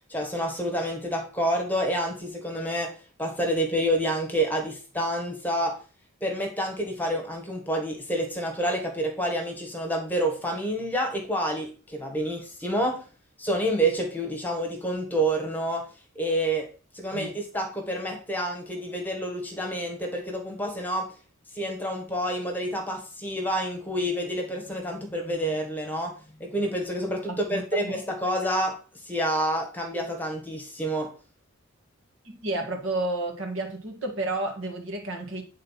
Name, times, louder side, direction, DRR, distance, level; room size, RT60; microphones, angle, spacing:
voice 1, 0.1-5.8 6.2-13.0 13.4-15.9 16.1-21.1 21.5-31.1, right 1 dB, 10° left, 1.3 m, -28 dB
voice 2, 27.5-28.0 32.2-35.4, right 2 dB, 70° right, 2.0 m, -31 dB
9.0 x 3.9 x 5.6 m
head